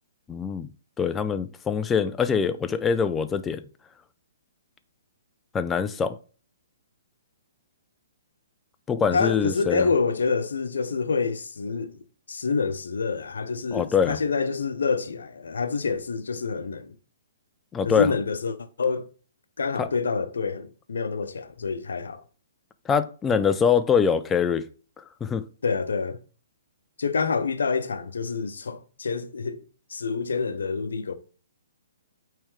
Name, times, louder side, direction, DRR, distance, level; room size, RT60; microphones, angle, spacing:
voice 1, 0.3-0.7 1.0-3.6 5.5-6.2 8.9-9.9 13.7-14.2 17.7-18.1 19.8-19.9 22.9-24.6 25.2-25.4, left 6 dB, 15° left, 0.5 m, -24 dB
voice 2, 9.1-12.0 12.3-16.9 17.8-19.0 19.6-22.2 25.6-26.2 27.0-29.6 29.9-31.1, left 4 dB, 75° left, 0.8 m, -27 dB
8.7 x 3.4 x 3.2 m
hypercardioid pair, 130°, 0 cm